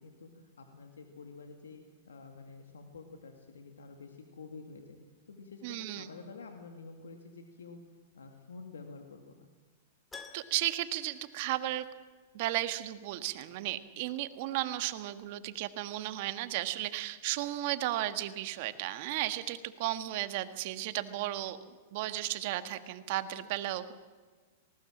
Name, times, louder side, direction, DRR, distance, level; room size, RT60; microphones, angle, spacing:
voice 1, 0.0-5.0 5.3-7.8 8.1-9.5, left 4 dB, 90° left, 4 dB, 2.2 m, -49 dB
voice 2, 5.6-6.1 10.3-11.9 12.3-21.6 21.9-23.9, right 15 dB, 55° right, 10 dB, 1.6 m, -34 dB
Keyboard (musical), 10.1-12.2 12.4-12.5 15.2-15.3 15.5-15.6, left 5 dB, 15° left, 2.1 m, -52 dB
19.0 x 19.0 x 7.4 m, 1.4 s
hypercardioid pair, 120°, 0 cm